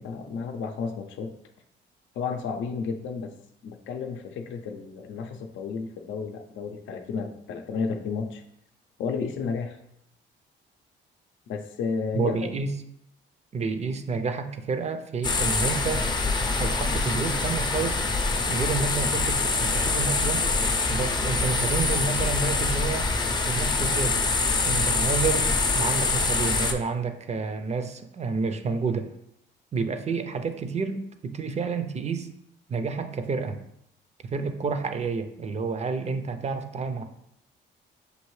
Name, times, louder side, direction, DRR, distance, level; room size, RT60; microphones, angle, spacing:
voice 1, 0.0-1.3 2.1-3.3 3.6-8.4 9.0-9.8 11.5-12.5, left 5 dB, 75° left, 5 dB, 0.5 m, -32 dB
voice 2, 12.1-12.7 13.5-16.1 16.6-18.0 18.5-20.4 20.9-23.1 23.4-24.2 24.6-29.1 29.7-32.3 32.7-33.6 34.2-37.0, right 5 dB, 35° right, 9 dB, 0.5 m, -29 dB
sound 1, 15.2-26.7, left 3 dB, 20° left, 0.5 m, -25 dB
6.4 x 2.7 x 3.1 m, 0.76 s
cardioid pair, 90°, 20 cm